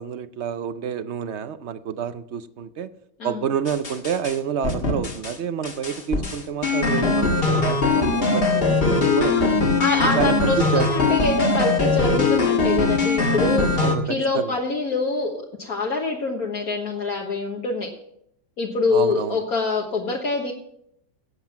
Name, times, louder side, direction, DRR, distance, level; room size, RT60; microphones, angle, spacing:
voice 1, 0.0-2.9 3.2-9.5 10.0-11.3 13.8-14.6 18.9-19.4, right 7 dB, 60° right, 13 dB, 0.7 m, -28 dB
sound 1, 3.7-4.4 4.6-5.4 5.6-14.0, left 3 dB, 35° left, 1.6 m, -21 dB
voice 2, 9.8-17.9 18.6-20.5, left 3 dB, 60° left, -1 dB, 1.8 m, -25 dB
17.5 x 7.7 x 5.8 m, 0.73 s
omnidirectional pair, 1.8 m